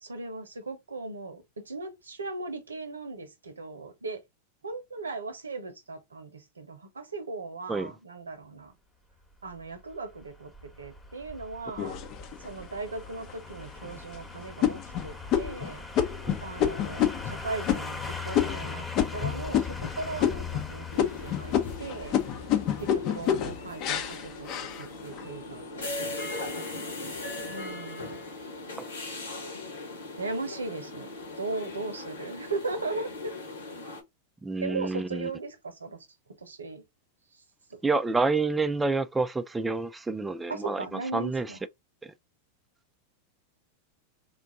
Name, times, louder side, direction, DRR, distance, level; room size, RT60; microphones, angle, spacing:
voice 1, 0.0-4.2 4.6-8.7 9.4-10.5 10.8-12.0 12.4-15.8 16.4-22.2 22.8-24.5 24.8-26.2 27.5-28.2 30.2-33.4 34.6-36.0 36.4-36.8 37.7-37.8 40.5-41.6, right 3 dB, 90° right, 0.8 m, -38 dB
sound 1, 9.5-24.4 24.7-24.8, left 4 dB, 10° left, 1.1 m, -40 dB
sound 2, 11.8-12.6 13.2-13.3 13.8-14.1 14.6-19.9 20.2-20.7 21.0-25.3 25.8-26.3, left 10 dB, 45° left, 0.8 m, -28 dB
sound 3, 20.9-34.0, left 2 dB, 80° left, 1.6 m, -39 dB
voice 2, 34.4-35.3 37.8-40.8 41.1-41.5, right 3 dB, 10° right, 0.4 m, -28 dB
3.6 x 2.5 x 3.6 m
hypercardioid pair, 95°, 0 cm